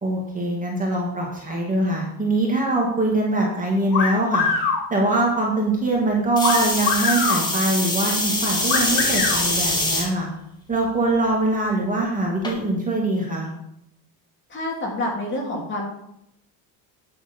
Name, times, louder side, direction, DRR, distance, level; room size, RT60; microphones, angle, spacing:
voice 1, 0.0-4.5 4.9-10.3 10.7-13.5, right 2 dB, 15° right, -2 dB, 2.2 m, -23 dB
sound 1, 3.9-4.8 6.4-7.4 8.7-9.4, left 5 dB, 70° left, 3.1 m, -23 dB
sound 2, 6.4-10.1 10.7-11.2 12.4-12.5, left 2 dB, 10° left, 1.9 m, -24 dB
voice 2, 14.5-15.9, left 1 dB, 25° left, -2 dB, 3.2 m, -27 dB
9.6 x 7.0 x 5.4 m, 0.78 s
cardioid pair, 145°, 45 cm